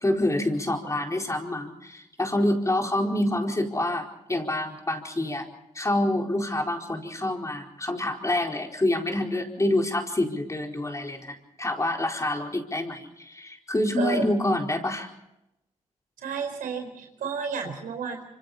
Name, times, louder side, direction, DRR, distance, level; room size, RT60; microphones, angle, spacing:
voice 1, 0.0-5.5 5.7-15.1, left 1 dB, 20° left, 2 dB, 4.5 m, -27 dB
voice 2, 14.0-14.3 16.2-18.3, right 5 dB, 85° right, 4 dB, 4.6 m, -31 dB
25.5 x 25.5 x 4.3 m, 0.88 s
supercardioid pair, 55°, 14 cm